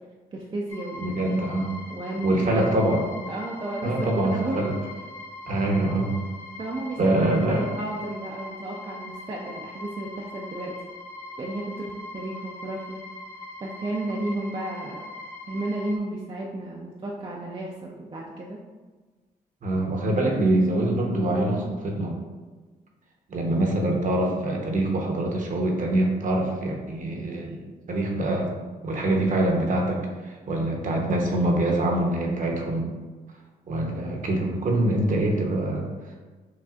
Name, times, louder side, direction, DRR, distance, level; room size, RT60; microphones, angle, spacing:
voice 1, 0.3-1.3 1.9-2.6 3.3-4.7 6.6-10.7 11.4-13.0 13.6-15.0 15.5-18.6, right 2 dB, 30° right, -2 dB, 0.5 m, -33 dB
sound 1, 0.7-16.0, left 2 dB, 15° left, 0.7 m, -41 dB
voice 2, 1.0-1.8 2.2-3.0 3.8-4.7 5.5-6.1 7.0-7.7 19.6-22.2 23.3-28.5 28.8-32.9 33.7-35.9, right 1 dB, 50° right, 0 dB, 0.9 m, -24 dB
6.1 x 2.3 x 2.4 m, 1.3 s
supercardioid pair, 65°, 17 cm